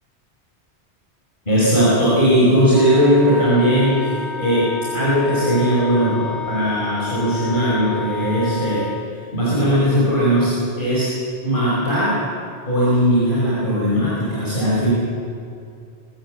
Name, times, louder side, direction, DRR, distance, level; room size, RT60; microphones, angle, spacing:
voice 1, 1.5-8.9 9.3-11.1 11.4-12.2 12.7-14.9, equal, 50° left, -8 dB, 5.7 m, -18 dB
Wind instrument woodwind instrument, 2.7-9.1, left 4 dB, ahead, 1.5 m, -30 dB
24.5 x 16.0 x 7.6 m, 2.5 s
omnidirectional pair, 1.1 m